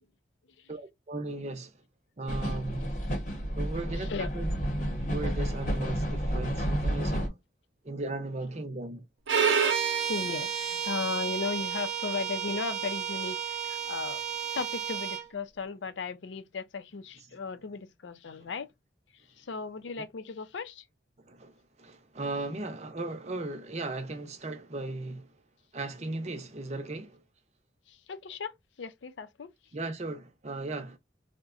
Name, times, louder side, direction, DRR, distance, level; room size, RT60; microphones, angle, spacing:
voice 1, 0.7-1.7 2.2-2.9 3.5-4.5 4.9-7.4 7.8-9.0 21.3-21.5 21.8-25.3 25.7-27.2 29.7-31.0, right 2 dB, 35° right, 0.6 m, -37 dB
sound 1, 2.3-7.3, equal, 40° left, 0.9 m, -31 dB
voice 2, 3.9-4.3 10.1-14.2 14.5-18.7 19.4-20.8 28.1-28.5 28.8-29.5, left 5 dB, 80° left, 0.5 m, -36 dB
Bowed string instrument, 9.3-15.3, right 7 dB, 85° right, 0.7 m, -30 dB
3.7 x 2.2 x 2.4 m
head